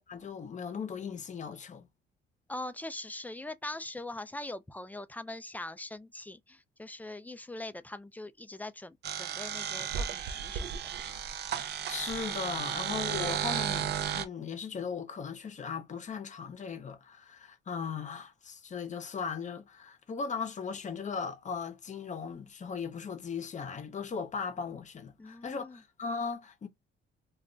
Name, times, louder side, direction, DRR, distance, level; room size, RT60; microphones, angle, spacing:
voice 1, 0.1-1.9 11.9-26.7, left 5 dB, 35° left, 0.7 m, -38 dB
voice 2, 2.5-10.7 25.2-25.8, left 2 dB, 10° left, 0.3 m, -42 dB
sound 1, 9.0-14.2, right 8 dB, 60° right, 0.5 m, -34 dB
2.3 x 2.1 x 3.7 m
cardioid pair, 90°, 20 cm